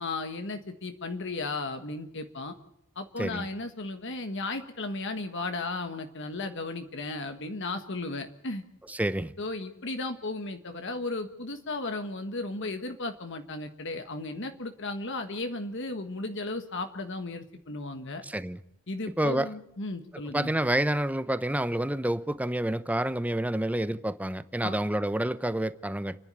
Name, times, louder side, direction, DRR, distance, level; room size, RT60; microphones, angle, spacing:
voice 1, 0.0-2.5 2.9-8.6 9.4-18.2 18.9-20.5 24.6-24.8, left 2 dB, 60° left, 1.5 m, -35 dB
voice 2, 8.9-9.3 18.2-18.6 19.2-19.5 20.3-26.2, right 1 dB, 5° right, 0.7 m, -28 dB
30.0 x 11.0 x 8.8 m
head